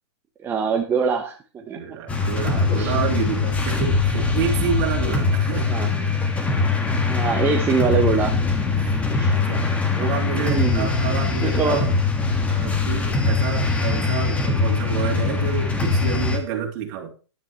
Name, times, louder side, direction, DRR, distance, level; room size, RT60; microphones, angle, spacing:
voice 1, 0.4-2.0 2.7-2.9 5.6-6.0 7.1-8.3 9.1-9.3 9.9-10.9 11.4-11.8, right 5 dB, 15° right, 3 dB, 1.0 m, -24 dB
voice 2, 1.7-5.9 8.7-11.9 12.5-17.1, right 8 dB, 40° right, 1 dB, 3.1 m, -29 dB
sound 1, 2.1-16.4, left 4 dB, 10° left, 1.7 m, -22 dB
11.5 x 10.5 x 3.1 m, 0.34 s
hypercardioid pair, 140°, 14 cm